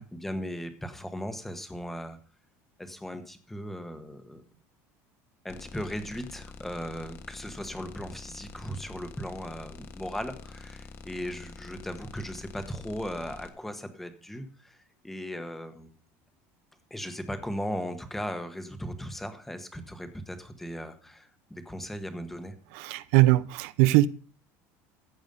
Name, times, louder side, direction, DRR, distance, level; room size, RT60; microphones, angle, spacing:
voice 1, 0.0-2.2 2.8-4.4 5.4-14.8 15.0-15.9 16.9-22.5, equal, 5° left, 1.2 m, -37 dB
sound 1, 5.5-13.5, left 4 dB, 40° left, 1.5 m, -46 dB
voice 2, 22.7-24.1, right 17 dB, 75° right, 0.7 m, -21 dB
15.0 x 8.2 x 5.3 m
cardioid pair, 175°, 7 cm